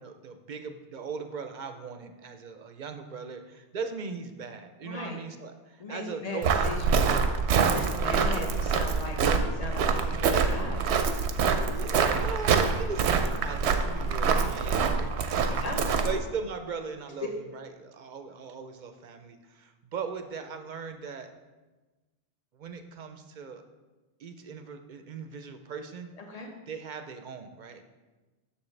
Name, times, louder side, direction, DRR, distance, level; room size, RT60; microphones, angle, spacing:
voice 1, 0.0-6.8 7.6-8.8 11.7-21.3 22.5-23.6 24.2-26.1 26.7-27.8, right 5 dB, 55° right, 7 dB, 0.6 m, -39 dB
voice 2, 4.8-5.2 5.8-7.3 7.7-10.9 15.6-16.1 26.2-26.5, left 2 dB, 40° left, 2 dB, 1.0 m, -38 dB
Walk footsteps, 6.4-16.2, right 5 dB, 90° right, 0.9 m, -25 dB
7.1 x 6.7 x 3.2 m, 1.2 s
omnidirectional pair, 1.1 m